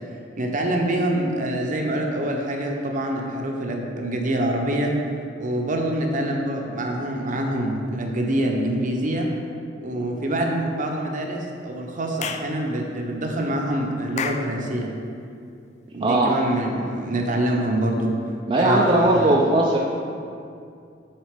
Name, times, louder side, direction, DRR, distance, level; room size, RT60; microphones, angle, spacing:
voice 1, 0.4-4.9 5.4-9.3 9.8-14.9 15.9-18.1 18.5-19.4, right 1 dB, 45° right, 1 dB, 0.8 m, -25 dB
Clapping / Chirp tweet, 12.2-12.5 14.2-14.5, left 6 dB, 40° left, 0.3 m, -29 dB
voice 2, 16.0-16.4 18.5-19.8, right 1 dB, 30° right, -3 dB, 0.5 m, -18 dB
7.4 x 4.1 x 5.0 m, 2.4 s
head